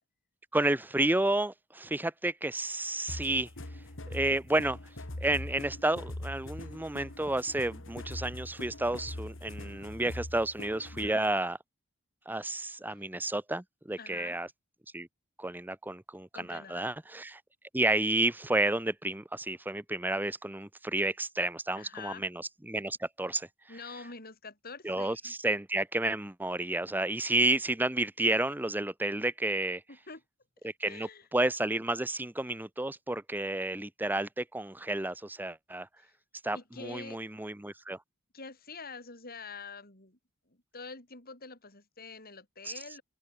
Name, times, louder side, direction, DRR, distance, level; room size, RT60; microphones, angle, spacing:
voice 1, 0.5-3.5 4.1-4.8 5.2-11.6 12.3-14.5 14.9-15.1 15.4-17.4 17.7-23.5 24.8-29.8 30.6-35.9 36.4-38.0 42.7-42.8, right 2 dB, 10° right, 0.8 m, -31 dB
sound 1, 3.1-11.3, left 1 dB, 65° left, 2.5 m, -42 dB
voice 2, 10.9-11.2 12.9-13.0 14.0-14.4 16.3-16.9 21.8-22.3 23.7-25.3 29.9-30.2 30.8-31.3 36.0-36.1 36.5-37.2 38.3-40.2 40.5-43.0, left 4 dB, 45° left, 7.2 m, -46 dB
head